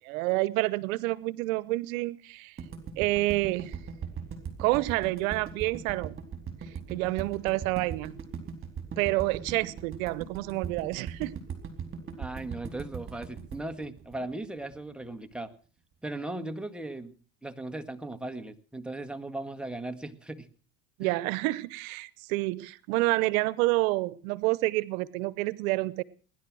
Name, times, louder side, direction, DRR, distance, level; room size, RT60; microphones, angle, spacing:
voice 1, 0.0-2.5 3.0-3.7 4.6-6.2 6.9-8.2 9.0-11.4 21.0-26.0, right 20 dB, 85° right, 0.9 m, -28 dB
sound 1, 2.6-14.8, right 7 dB, 30° right, 4.2 m, -39 dB
voice 2, 12.2-15.5 16.0-17.2 17.4-20.5 21.0-21.2, right 2 dB, ahead, 1.7 m, -37 dB
19.5 x 11.0 x 6.2 m
supercardioid pair, 100°, 40 cm